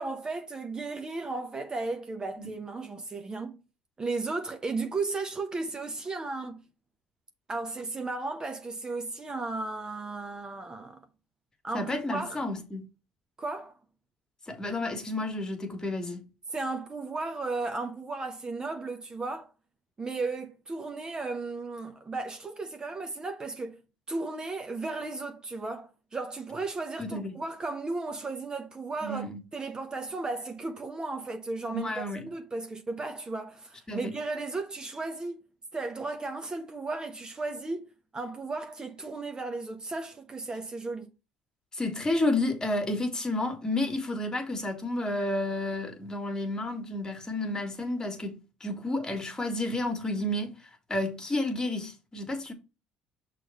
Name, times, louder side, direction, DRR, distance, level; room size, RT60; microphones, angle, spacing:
voice 1, 0.0-3.6 4.0-6.6 7.5-11.0 11.6-12.4 13.4-13.7 16.5-19.5 20.0-23.8 24.1-35.4 35.7-37.9 38.1-41.1, right 3 dB, 25° right, 0.9 m, -35 dB
voice 2, 11.7-12.8 14.5-16.2 27.0-27.3 29.0-29.4 31.7-32.3 33.9-34.2 41.7-50.6 50.9-52.5, left 2 dB, 20° left, 1.9 m, -31 dB
6.2 x 3.3 x 5.5 m
supercardioid pair, 95°, 3 cm